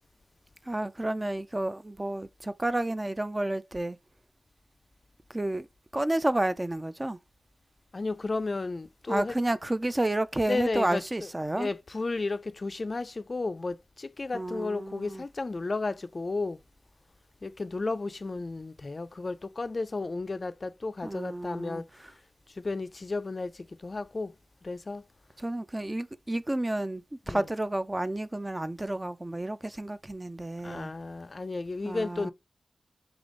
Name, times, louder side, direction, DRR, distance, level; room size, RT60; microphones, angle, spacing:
voice 1, 0.6-4.0 5.3-5.7 5.9-7.2 9.1-11.7 14.3-15.2 21.0-22.1 25.4-30.9 31.8-32.3, right 1 dB, 20° right, 0.4 m, -31 dB
voice 2, 7.9-9.3 10.5-11.0 11.6-16.6 17.4-21.8 22.6-23.5 23.8-24.3 24.6-25.0 27.3-27.4 30.6-32.3, left 3 dB, 45° left, 0.4 m, -33 dB
3.5 x 3.4 x 3.7 m
wide cardioid pair, 80°, 0 cm